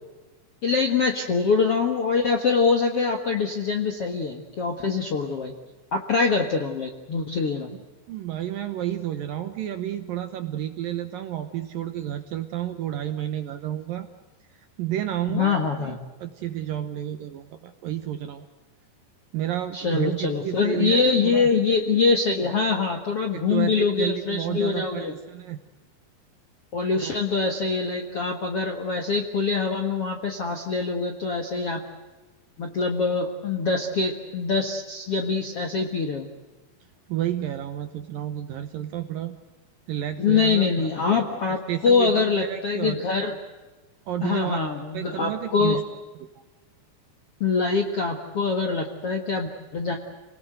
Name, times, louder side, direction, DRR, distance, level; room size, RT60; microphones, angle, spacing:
voice 1, 0.6-5.5 5.9-7.7 15.3-16.0 19.7-25.1 26.7-31.8 32.6-36.3 40.2-43.3 44.2-45.8 47.4-50.0, left 4 dB, 60° left, 4 dB, 1.6 m, -24 dB
voice 2, 8.1-14.1 14.8-18.5 19.3-21.5 23.3-25.6 27.0-27.1 37.1-39.4 39.9-41.3 41.7-43.0 44.1-44.6 44.9-45.8 46.2-46.3, right 11 dB, 70° right, 9 dB, 2.2 m, -31 dB
28.5 x 19.5 x 7.9 m, 1.2 s
omnidirectional pair, 5.1 m